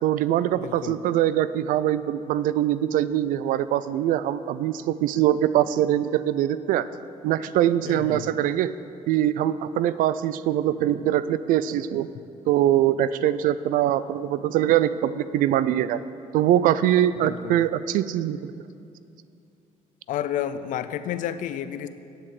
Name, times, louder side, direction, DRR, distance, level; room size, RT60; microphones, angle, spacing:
voice 1, 0.0-6.8 7.2-8.7 9.1-12.1 12.5-16.0 16.3-18.5, right 12 dB, 80° right, 15 dB, 0.4 m, -23 dB
voice 2, 0.5-1.0 7.8-8.3 17.2-17.7 20.1-21.9, left 10 dB, 70° left, 12 dB, 0.5 m, -31 dB
8.6 x 7.6 x 7.7 m, 2.6 s
cardioid pair, 110°, 14 cm